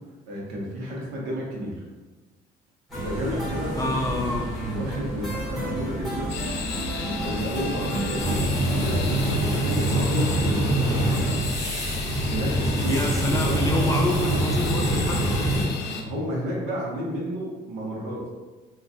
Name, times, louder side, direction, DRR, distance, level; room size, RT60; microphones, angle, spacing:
voice 1, 0.3-1.7 2.9-4.0 4.6-6.3 7.0-11.4 12.2-13.0 13.3-13.6 15.9-18.3, equal, 90° right, -3 dB, 0.9 m, -31 dB
sound 1, 2.9-8.4, right 1 dB, ahead, 1.3 m, -31 dB
voice 2, 3.8-4.6 12.8-15.7, left 2 dB, 20° left, 1 dB, 0.4 m, -28 dB
sound 2, 6.3-16.0, left 5 dB, 80° left, 0.4 m, -34 dB
sound 3, 8.2-15.6, right 1 dB, 20° right, 0.8 m, -24 dB
3.1 x 2.4 x 2.6 m, 1.2 s
cardioid pair, 110°, 17 cm